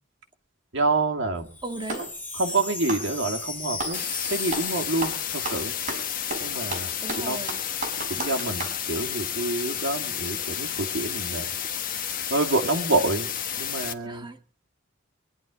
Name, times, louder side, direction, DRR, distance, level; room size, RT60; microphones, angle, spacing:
voice 1, 0.7-1.5 2.3-5.7 6.4-7.4 8.1-11.5 12.1-14.3, right 2 dB, 65° right, 2 dB, 2.6 m, -28 dB
Clapping, 1.2-2.2 2.8-4.0 4.5-4.7 5.0-8.8, right 2 dB, 40° right, 5.2 m, -34 dB
Wind chime, 1.4-6.6 6.9-7.0 7.2-7.6, left 3 dB, 10° left, 6.0 m, -37 dB
voice 2, 1.6-2.1 7.0-7.6 14.0-14.4, right 2 dB, 25° right, 5 dB, 1.7 m, -36 dB
sound 1, 3.9-13.9, left 9 dB, 45° left, 1.5 m, -31 dB
23.5 x 11.0 x 5.1 m, 0.40 s
head